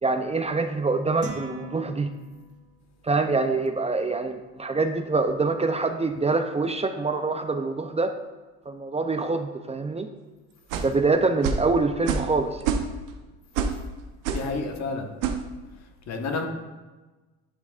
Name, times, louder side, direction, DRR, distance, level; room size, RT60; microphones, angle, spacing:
voice 1, 0.0-2.1 3.0-8.1 8.7-10.1 10.8-12.8, right 3 dB, 20° right, 7 dB, 0.5 m, -25 dB
sound 1, 1.2-2.7, right 2 dB, 50° right, 1.8 m, -40 dB
sound 2, 10.7-11.0 11.4-11.7 12.1-12.3 12.6-13.1 13.6-13.8 14.3-14.5 15.2-15.4, right 6 dB, 80° right, 0.8 m, -26 dB
voice 2, 14.3-15.1 16.1-16.5, left 3 dB, 60° left, 4 dB, 1.3 m, -30 dB
11.5 x 5.8 x 2.4 m, 1.2 s
supercardioid pair, 75°, 31 cm